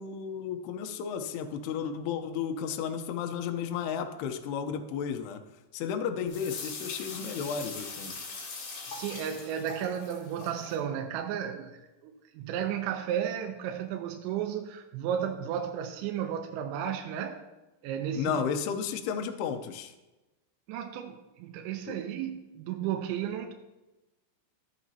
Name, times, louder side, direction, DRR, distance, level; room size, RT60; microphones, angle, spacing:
voice 1, 0.0-5.4 5.7-8.1 18.2-19.9 21.9-22.0, left 7 dB, 90° left, 2.3 m, -33 dB
sound 1, 6.3-10.8, left 4 dB, 55° left, 3.4 m, -41 dB
voice 2, 8.9-17.4 17.8-18.5 20.7-23.5, right 9 dB, 85° right, 2.8 m, -33 dB
14.0 x 8.3 x 2.8 m
omnidirectional pair, 5.8 m